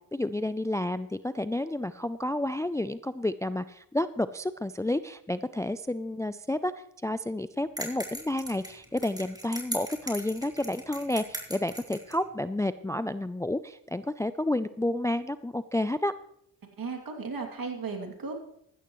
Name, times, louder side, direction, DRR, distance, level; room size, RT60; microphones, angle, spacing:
voice 1, 0.0-6.7 7.0-16.1, left 1 dB, 10° left, 14 dB, 0.4 m, -30 dB
sound 1, 7.8-12.2, right 1 dB, 10° right, 3.8 m, -39 dB
voice 2, 16.8-18.3, right 4 dB, 55° right, 3 dB, 2.8 m, -35 dB
15.0 x 13.0 x 3.1 m, 0.75 s
cardioid pair, 50°, 40 cm